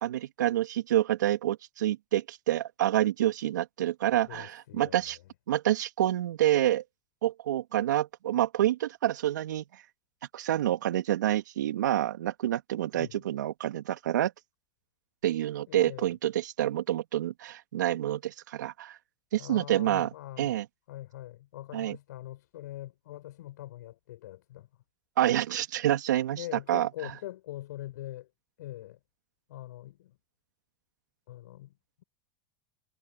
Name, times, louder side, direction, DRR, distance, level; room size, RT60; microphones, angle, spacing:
voice 1, 0.0-5.2 5.5-6.8 7.2-9.6 10.3-14.3 15.2-19.0 19.3-20.6 21.7-22.0 25.2-27.1, right 12 dB, 80° right, 2.7 m, -28 dB
voice 2, 4.3-5.2 13.0-13.2 15.7-16.1 19.3-20.6 20.9-24.7 26.4-28.3 28.6-29.0 29.5-30.1 31.3-31.7, left 14 dB, 75° left, 7.1 m, -43 dB
hypercardioid pair, 95°, 10 cm